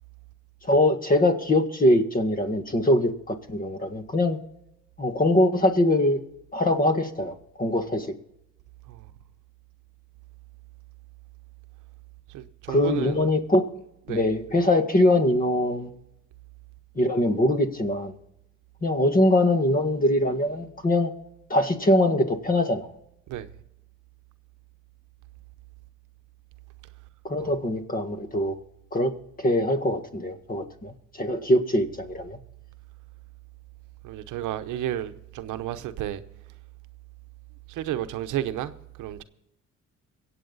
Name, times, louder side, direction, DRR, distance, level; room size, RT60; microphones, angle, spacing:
voice 1, 0.6-4.4 5.0-6.2 6.5-8.1 12.7-13.7 14.1-15.9 17.0-18.1 18.8-21.1 21.5-22.9 27.2-28.5 28.9-32.4, left 1 dB, 30° left, 1.7 m, -23 dB
voice 2, 12.3-13.2 14.1-14.2 23.3-23.5 27.4-27.5 34.0-36.2 37.7-38.7 39.0-39.2, right 12 dB, 85° right, 0.8 m, -32 dB
23.5 x 8.3 x 4.0 m
cardioid pair, 90°, 30 cm